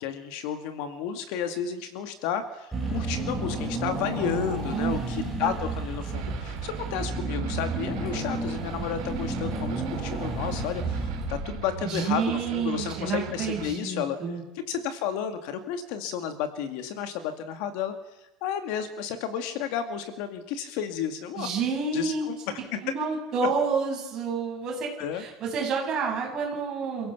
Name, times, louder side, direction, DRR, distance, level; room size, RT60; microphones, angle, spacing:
voice 1, 0.0-14.2 14.7-21.5 21.9-22.4 22.7-22.8 23.4-23.5 25.0-25.2, left 8 dB, 50° left, 8 dB, 2.1 m, -32 dB
Car / Engine, 2.7-11.9, right 2 dB, 5° right, 7.7 m, -32 dB
voice 2, 4.7-5.5 11.8-14.4 21.4-22.3 22.8-27.1, right 5 dB, 25° right, -1 dB, 7.7 m, -29 dB
sound 1, 6.1-13.7, right 10 dB, 65° right, 5.5 m, -40 dB
28.5 x 17.0 x 7.1 m, 0.99 s
supercardioid pair, 175°, 2 cm